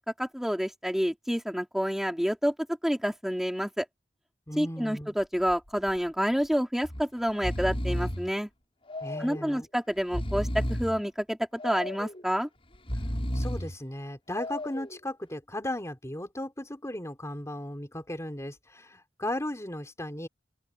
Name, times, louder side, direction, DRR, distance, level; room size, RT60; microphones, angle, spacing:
voice 1, 0.0-3.9 4.6-8.5 9.2-12.5, equal, ahead, 3.7 m, -28 dB
voice 2, 4.5-5.1 9.0-9.7 13.3-20.3, left 1 dB, 15° left, 3.5 m, -36 dB
Breathing, 5.2-5.5 5.9-6.0 6.8-7.0 7.3-8.3 8.9-9.5 10.0-11.0 11.6-12.2 12.7-13.8 14.3-15.0, equal, 30° left, 6.1 m, -33 dB
open air
head